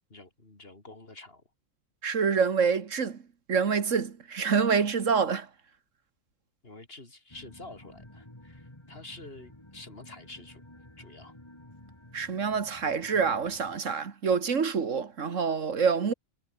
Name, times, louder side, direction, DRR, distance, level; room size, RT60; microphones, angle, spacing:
voice 1, 0.1-1.4 6.6-10.6 11.0-11.4, left 2 dB, 45° left, 3.9 m, -48 dB
voice 2, 2.0-3.2 3.5-5.5 12.1-16.1, right 6 dB, 70° right, 1.9 m, -26 dB
sound 1, 7.3-13.8, left 1 dB, 20° left, 3.6 m, -52 dB
omnidirectional pair, 1.4 m